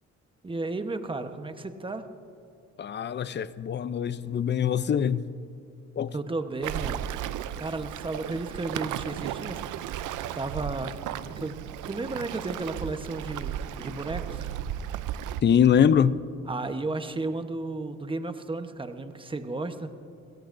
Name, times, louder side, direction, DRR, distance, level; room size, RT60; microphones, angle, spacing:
voice 1, 0.4-2.1 6.1-7.0 7.6-9.6 10.3-10.9 11.4-11.5 11.9-14.5 16.5-19.9, right 2 dB, 15° right, 1.1 m, -33 dB
voice 2, 2.8-5.2 6.0-6.1 15.4-16.2, left 8 dB, 35° left, 0.6 m, -23 dB
Waves surf, 6.6-15.4, right 11 dB, 80° right, 0.6 m, -35 dB
27.5 x 17.0 x 2.6 m
cardioid pair, 90°, 30 cm